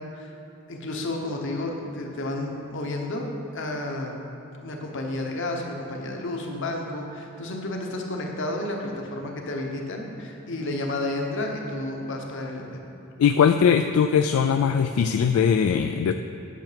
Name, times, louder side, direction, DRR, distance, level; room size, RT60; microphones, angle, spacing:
voice 1, 0.7-3.3 3.5-4.2 4.6-12.8, left 2 dB, 60° left, 1 dB, 1.1 m, -31 dB
voice 2, 13.2-16.1, left 7 dB, 80° left, 7 dB, 0.3 m, -20 dB
9.2 x 6.0 x 5.1 m, 3.0 s
head